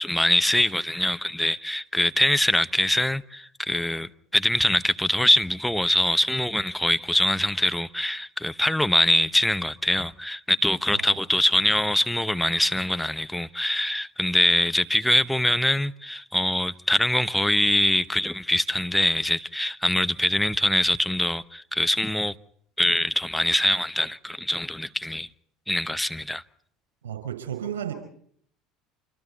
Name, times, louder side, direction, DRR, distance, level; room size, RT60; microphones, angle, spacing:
voice 1, 0.0-22.3 22.8-25.3 25.7-26.4, left 1 dB, 5° left, 1.0 m, -23 dB
voice 2, 27.0-27.9, right 9 dB, 75° right, 5.2 m, -32 dB
26.5 x 26.0 x 4.2 m
figure-of-eight pair, 65°, 0 cm